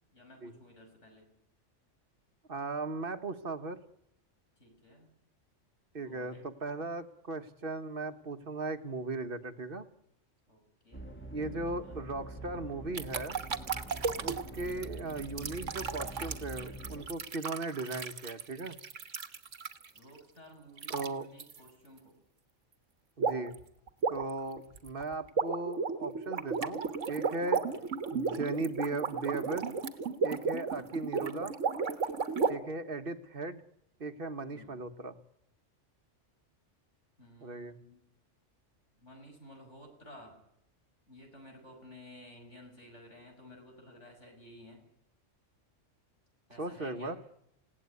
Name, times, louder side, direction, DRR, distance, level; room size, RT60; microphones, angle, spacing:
voice 1, 0.1-1.3 4.6-5.1 5.9-6.5 10.5-11.1 11.4-12.1 14.6-14.9 19.9-22.2 27.7-27.9 34.5-34.8 37.2-38.1 39.0-40.4 41.1-44.8 46.5-47.2, left 1 dB, 70° left, 3 dB, 6.2 m, -54 dB
voice 2, 2.5-3.8 5.9-9.8 11.3-13.4 14.2-18.8 20.9-21.3 23.2-23.6 24.1-26.8 27.1-27.6 28.1-29.8 30.2-31.5 32.5-33.6 34.0-35.1 37.4-37.8 46.6-47.1, right 2 dB, 50° right, 8 dB, 1.5 m, -37 dB
sound 1, 10.9-17.1, right 2 dB, 10° left, 1.8 m, -45 dB
sound 2, 12.9-20.0 20.8-21.1 21.4-21.6 23.2-23.6 23.9-32.5, right 5 dB, 75° right, 1.7 m, -34 dB
27.5 x 17.5 x 9.7 m, 0.80 s
omnidirectional pair, 1.3 m